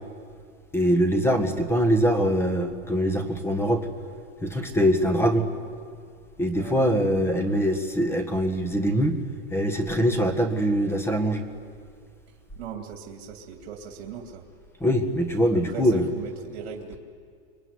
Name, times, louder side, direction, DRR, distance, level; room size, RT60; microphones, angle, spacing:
voice 1, 0.7-3.9 4.4-5.4 6.4-9.2 9.5-11.4 14.8-16.1, equal, 10° left, 7 dB, 1.6 m, -23 dB
voice 2, 6.6-6.9 12.6-14.4 15.5-17.0, right 6 dB, 70° right, 3 dB, 2.7 m, -39 dB
26.0 x 22.5 x 9.7 m, 2.3 s
supercardioid pair, 160°, 32 cm